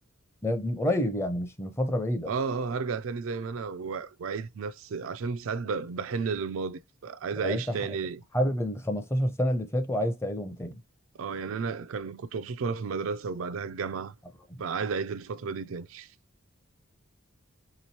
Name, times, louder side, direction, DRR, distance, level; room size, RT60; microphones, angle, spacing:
voice 1, 0.4-2.3 7.4-7.8 8.3-10.8 14.5-14.6, equal, 15° left, 0.6 m, -28 dB
voice 2, 2.3-8.2 11.2-14.1 14.6-16.1, right 5 dB, 70° right, 0.4 m, -33 dB
3.4 x 3.0 x 4.2 m
head